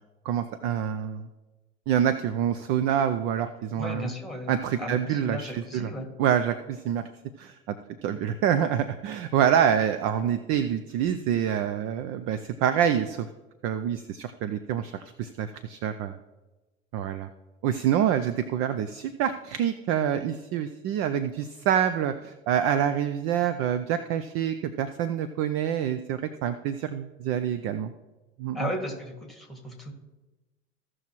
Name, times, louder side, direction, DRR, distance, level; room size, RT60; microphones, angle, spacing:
voice 1, 0.3-1.3 1.9-4.1 4.5-5.9 6.2-7.0 7.4-7.8 8.0-13.3 13.6-16.1 16.9-17.3 17.6-27.9 28.4-28.7, right 9 dB, 35° right, 11 dB, 0.5 m, -26 dB
voice 2, 3.7-6.1 28.5-29.9, left 1 dB, ahead, 3 dB, 2.0 m, -35 dB
15.5 x 6.2 x 3.0 m, 1.1 s
figure-of-eight pair, 80°, 39 cm